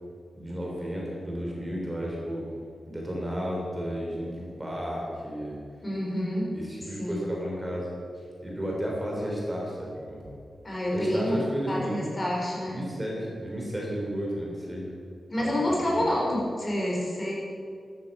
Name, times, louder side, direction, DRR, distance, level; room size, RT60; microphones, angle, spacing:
voice 1, 0.3-2.5 2.9-5.6 6.5-10.3 10.9-12.0 12.7-14.9 15.4-16.1, equal, 15° right, -3 dB, 3.5 m, -33 dB
voice 2, 5.8-6.5 7.0-7.3 10.6-11.3 11.7-12.8 15.3-17.3, left 1 dB, 25° left, -3 dB, 4.5 m, -28 dB
13.0 x 10.5 x 8.1 m, 2.2 s
wide cardioid pair, 130°, 0 cm